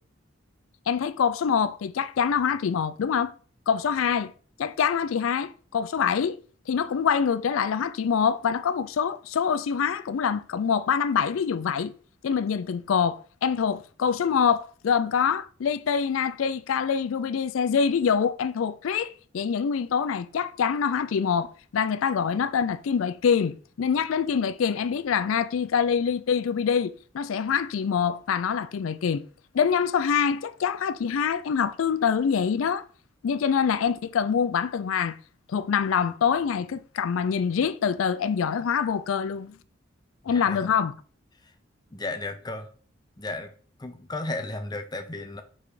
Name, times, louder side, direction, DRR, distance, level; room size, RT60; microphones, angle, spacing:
voice 1, 0.9-3.3 3.7-4.3 4.6-6.4 6.7-11.9 12.2-29.2 29.5-32.8 33.2-35.2 35.5-39.6 40.3-40.9, left 7 dB, 85° left, 0.4 m, -25 dB
voice 2, 40.3-40.7 41.4-41.5 41.9-42.7 43.2-43.5 43.8-45.4, left 2 dB, 20° left, 0.7 m, -34 dB
5.5 x 4.1 x 4.9 m
head